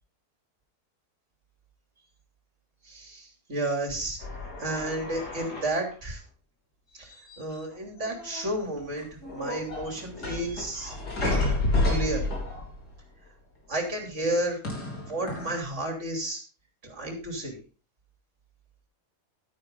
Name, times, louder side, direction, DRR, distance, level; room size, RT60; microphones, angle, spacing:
voice 1, 2.8-4.2 4.6-6.2 6.9-9.1 9.3-11.6 11.9-12.3 13.7-14.6 15.0-16.4 16.8-17.6, right 1 dB, 45° right, 2 dB, 3.4 m, -32 dB
sound 1, 4.2-5.9 7.1-7.7 8.0-8.6 9.0-12.9 14.6-15.6, left 2 dB, 85° left, 4.5 m, -30 dB
12.0 x 9.8 x 3.8 m, 0.35 s
omnidirectional pair, 1.7 m